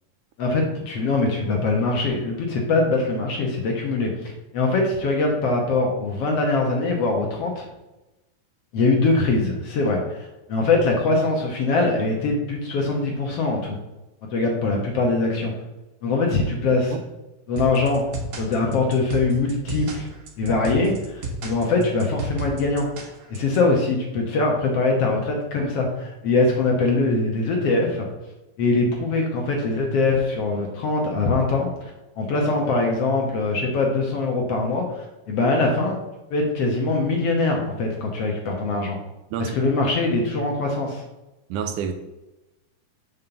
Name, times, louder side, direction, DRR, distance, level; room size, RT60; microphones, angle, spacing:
voice 1, 0.4-7.7 8.7-13.8 14.3-15.5 16.0-16.9 17.5-18.0 18.4-20.1 20.4-22.9 23.3-28.1 28.6-31.7 32.2-36.0 36.3-39.0 39.4-41.0, left 3 dB, 60° left, 0 dB, 1.8 m, -22 dB
sound 1, 17.6-23.6, right 2 dB, 55° right, 1.4 m, -33 dB
voice 2, 41.5-41.9, right 7 dB, 80° right, 7 dB, 2.1 m, -28 dB
5.7 x 5.3 x 6.8 m, 1.0 s
omnidirectional pair, 3.8 m